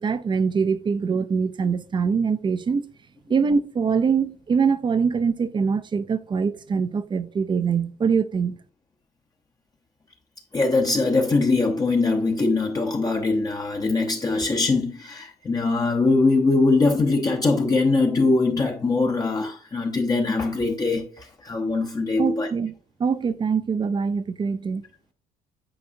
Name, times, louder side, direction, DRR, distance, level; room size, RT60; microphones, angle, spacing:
voice 1, 0.0-2.8 3.3-8.6 22.2-22.7 23.0-24.8, right 5 dB, 30° right, 0.5 m, -23 dB
voice 2, 10.5-22.5, left 3 dB, 20° left, 0.8 m, -22 dB
8.6 x 4.7 x 2.7 m
cardioid pair, 110°, 17 cm